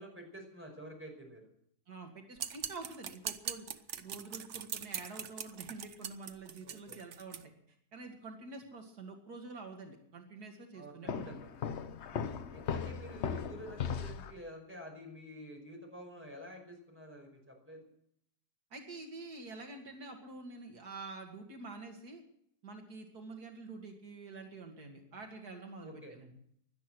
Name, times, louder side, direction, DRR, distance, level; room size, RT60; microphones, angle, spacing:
voice 1, 0.0-1.4 6.6-7.0 10.7-11.5 12.5-17.8 25.8-26.1, equal, 5° right, 1 dB, 5.2 m, -49 dB
voice 2, 1.9-11.5 12.1-12.4 18.7-22.2 22.6-26.3, right 3 dB, 75° right, 3 dB, 2.5 m, -47 dB
sound 1, 2.4-7.4, right 8 dB, 55° right, 1.0 m, -41 dB
Walk footsteps, 11.1-14.4, left 7 dB, 55° left, 0.9 m, -38 dB
17.0 x 12.0 x 6.1 m, 0.71 s
omnidirectional pair, 1.7 m